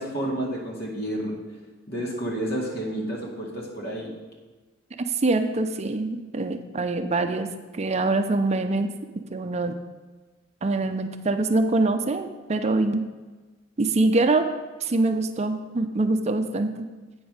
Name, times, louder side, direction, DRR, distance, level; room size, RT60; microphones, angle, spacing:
voice 1, 0.0-1.4 1.9-4.1, right 1 dB, 55° left, -1 dB, 2.1 m, -30 dB
voice 2, 5.2-7.5 7.7-8.9 9.3-9.8 10.6-13.1 13.8-14.5 14.8-16.9, right 2 dB, 35° right, 7 dB, 0.5 m, -24 dB
8.7 x 5.3 x 6.4 m, 1.3 s
head